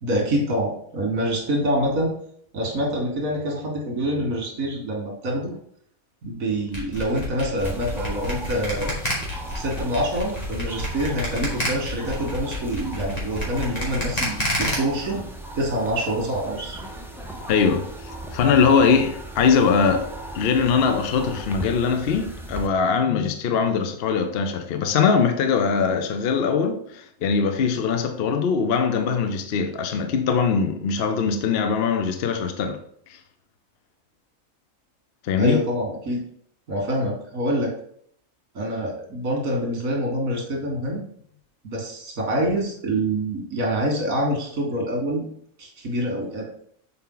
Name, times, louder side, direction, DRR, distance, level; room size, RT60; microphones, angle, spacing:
voice 1, 0.0-2.1 2.5-5.6 6.2-8.9 9.6-15.2 15.6-16.8 35.4-36.2 36.7-37.7 38.5-41.0 41.6-45.3 45.6-46.5, right 1 dB, 80° right, 2.2 m, -26 dB
sound 1, 6.7-14.7, left 1 dB, 30° left, 1.9 m, -29 dB
sound 2, 7.6-22.7, right 1 dB, 5° right, 0.5 m, -37 dB
voice 2, 17.5-32.8 35.2-35.6, left 5 dB, 55° left, 0.8 m, -21 dB
7.0 x 4.4 x 3.9 m
omnidirectional pair, 1.4 m